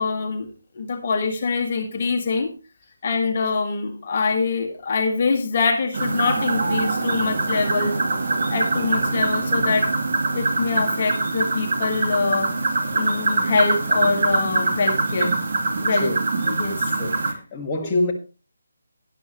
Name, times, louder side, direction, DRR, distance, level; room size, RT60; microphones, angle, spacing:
voice 1, 0.0-2.5 3.0-8.0 8.5-9.9 10.3-12.5 12.9-15.4 15.8-16.1 16.5-16.9, left 4 dB, 35° left, 1.7 m, -24 dB
sound 1, 5.9-17.3, right 3 dB, 45° right, 2.3 m, -23 dB
voice 2, 17.0-18.1, left 2 dB, 15° left, 1.7 m, -26 dB
12.5 x 10.5 x 3.0 m
figure-of-eight pair, 150°, 0 cm